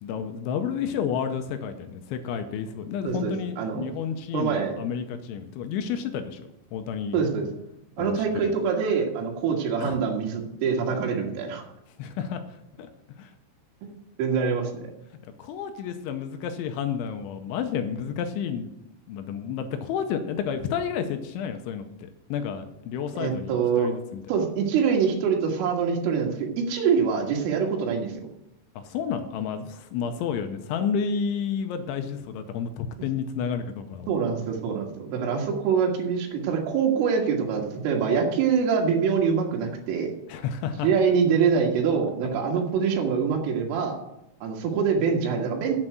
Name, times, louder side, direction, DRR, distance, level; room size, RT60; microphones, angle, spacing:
voice 1, 0.0-6.4 6.7-7.2 8.0-8.5 9.8-10.0 12.0-12.4 12.8-12.9 13.2-13.3 15.4-18.7 19.1-24.2 28.8-34.1 40.3-40.9 42.5-42.6, left 7 dB, 85° left, 7 dB, 3.0 m, -31 dB
voice 2, 3.0-3.9 4.3-4.7 7.1-7.5 8.0-11.6 13.8-13.9 14.2-14.7 23.2-23.9 24.3-28.3 34.1-40.1 40.8-44.0 44.4-45.7, right 6 dB, 90° right, 1 dB, 4.3 m, -25 dB
8.8 x 7.9 x 7.7 m, 0.84 s
omnidirectional pair, 5.6 m